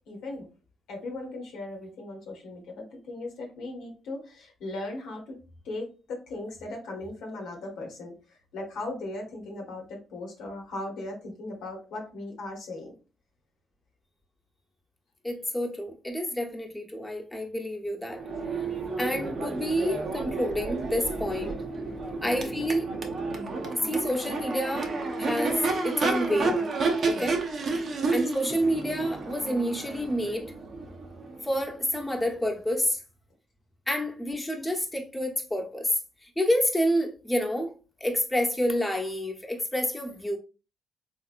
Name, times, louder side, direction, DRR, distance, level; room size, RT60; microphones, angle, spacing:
voice 1, 0.1-0.5 0.9-5.3 5.6-8.1 8.5-12.9 21.4-21.6 26.3-26.6 27.1-27.3, left 2 dB, 70° left, 1.0 m, -38 dB
voice 2, 15.2-18.2 18.5-18.7 19.0-21.6 22.2-22.9 23.7-26.6 27.1-27.3 28.1-30.5 31.4-33.0 33.9-37.7 38.0-40.4, equal, 10° left, 1.1 m, -28 dB
Crowd / Race car auto racing / Accelerating revving vroom, 18.1-31.9, right 3 dB, 55° right, 0.7 m, -31 dB
3.7 x 2.8 x 2.5 m
hypercardioid pair, 50°, 0 cm